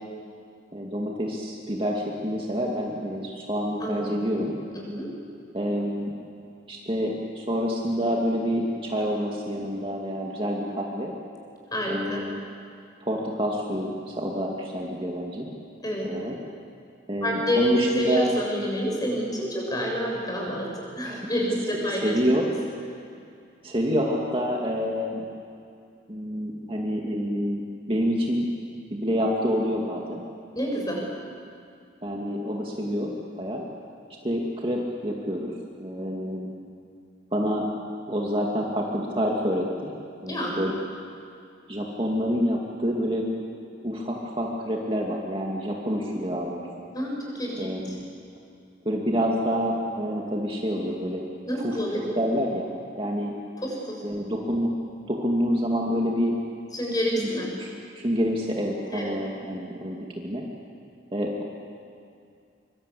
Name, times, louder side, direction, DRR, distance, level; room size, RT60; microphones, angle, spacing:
voice 1, 0.7-4.5 5.5-6.1 6.7-11.1 11.9-12.4 13.0-15.5 16.0-16.3 17.1-18.3 21.0-21.3 22.0-22.5 23.6-25.2 26.1-28.5 28.9-30.2 32.0-33.6 34.2-35.5 35.8-36.5 37.3-37.7 38.1-39.9 40.2-40.7 41.7-43.2 43.8-46.7 47.6-48.1 48.8-51.2 51.6-51.8 52.1-52.7 53.0-53.3 54.0-54.7 55.1-56.3 57.2-57.3 57.6-60.4 61.1-61.4, equal, 30° right, -2 dB, 2.4 m, -27 dB
voice 2, 4.7-5.1 11.7-12.2 15.8-16.1 17.2-22.1 30.5-31.0 40.3-40.6 46.9-47.7 51.5-52.0 53.6-54.0 56.7-57.5 58.9-59.1, equal, 20° left, -1 dB, 7.2 m, -28 dB
25.0 x 25.0 x 8.5 m, 2.4 s
head